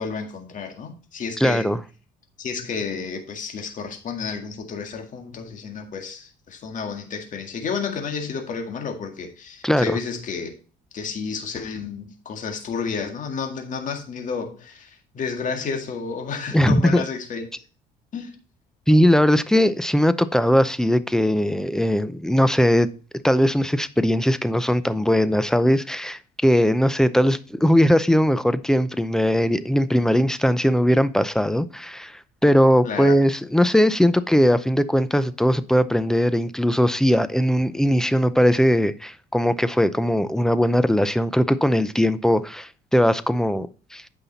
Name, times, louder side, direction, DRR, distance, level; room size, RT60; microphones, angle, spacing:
voice 1, 0.0-1.7 2.4-10.5 10.9-17.5 18.1-18.4 32.8-33.2, left 5 dB, 50° left, 2.0 m, -31 dB
voice 2, 1.4-1.8 9.6-10.0 16.5-17.0 18.9-22.9 23.2-44.0, equal, 5° left, 0.6 m, -19 dB
8.9 x 5.8 x 4.1 m
cardioid pair, 110°, 17 cm